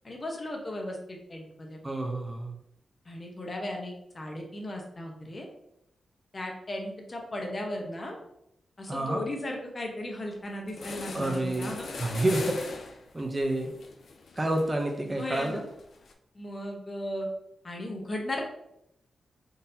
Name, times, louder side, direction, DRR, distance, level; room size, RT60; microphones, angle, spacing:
voice 1, 0.0-1.8 3.1-5.5 6.3-8.1 8.8-11.9 15.1-15.6 16.3-17.3 17.6-18.4, left 1 dB, 40° left, 1 dB, 0.8 m, -36 dB
voice 2, 1.8-2.6 8.9-9.2 11.1-12.7 13.1-13.7 14.4-15.6, right 1 dB, 30° right, 3 dB, 0.5 m, -29 dB
sound 1, 10.3-10.4 10.7-16.1, left 4 dB, 75° left, 0.4 m, -42 dB
3.8 x 2.7 x 2.7 m, 0.79 s
cardioid pair, 70°, 0 cm